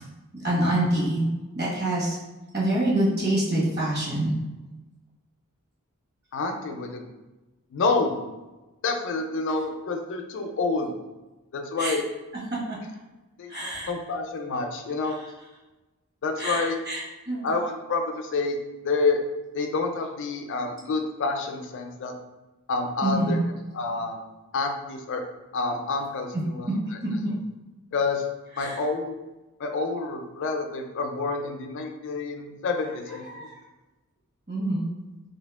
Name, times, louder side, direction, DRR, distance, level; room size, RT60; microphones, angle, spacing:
voice 1, 0.4-1.3 1.5-2.2 2.5-4.3 11.8-11.9 12.7-12.8 13.5-13.9 16.4-17.0 17.3-17.5 23.0-23.4 28.6-28.7 33.3-33.5 34.5-34.9, right 1 dB, 50° right, -6 dB, 1.2 m, -25 dB
voice 2, 6.3-7.0 7.7-8.2 8.8-10.9 11.5-12.1 13.4-15.2 16.2-16.8 17.4-18.6 18.8-19.2 19.5-22.1 22.7-23.4 23.7-24.2 24.5-25.2 25.5-26.7 27.9-28.2 28.6-29.2 29.6-33.5, left 3 dB, 55° left, 5 dB, 0.4 m, -28 dB
2.8 x 2.7 x 3.4 m, 1.1 s
head